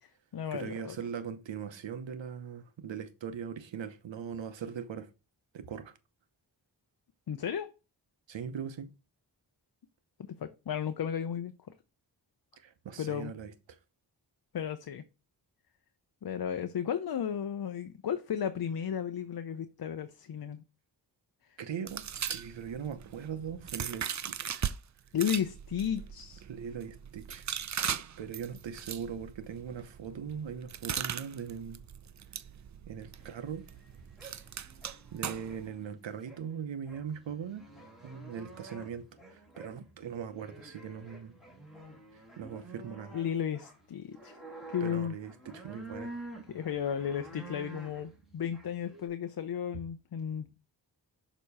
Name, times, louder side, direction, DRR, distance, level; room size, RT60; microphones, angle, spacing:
voice 1, 0.0-1.0 7.3-7.7 10.4-11.5 13.0-13.3 14.5-15.0 16.2-20.6 25.1-26.4 43.1-44.4 44.7-45.2 46.5-50.6, left 8 dB, 55° left, 0.6 m, -34 dB
voice 2, 0.5-5.1 5.5-5.9 8.3-8.9 12.6-13.8 21.6-24.7 26.5-27.5 27.9-31.8 32.9-33.7 35.1-37.7 38.0-41.4 42.1-43.2 44.8-46.1, right 7 dB, 85° right, 0.9 m, -40 dB
sound 1, 21.9-24.8 25.1-35.7, right 8 dB, 40° right, 0.5 m, -39 dB
sound 2, 33.2-49.1, right 2 dB, ahead, 2.2 m, -50 dB
6.5 x 3.0 x 5.4 m
cardioid pair, 50°, 43 cm